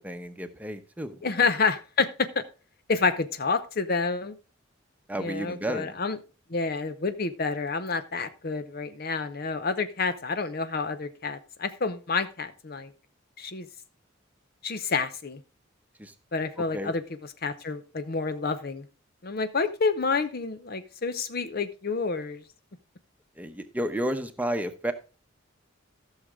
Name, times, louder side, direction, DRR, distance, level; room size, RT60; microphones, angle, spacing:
voice 1, 0.0-1.3 5.1-5.9 16.0-16.1 16.7-16.9 23.4-24.9, equal, 10° right, 8 dB, 0.9 m, -32 dB
voice 2, 1.2-2.4 2.9-4.4 5.2-6.2 6.5-12.9 13.4-13.7 14.6-15.4 16.3-17.0 17.4-18.8 19.2-22.4, left 4 dB, 50° left, 11 dB, 0.7 m, -28 dB
14.5 x 6.5 x 3.6 m, 0.34 s
head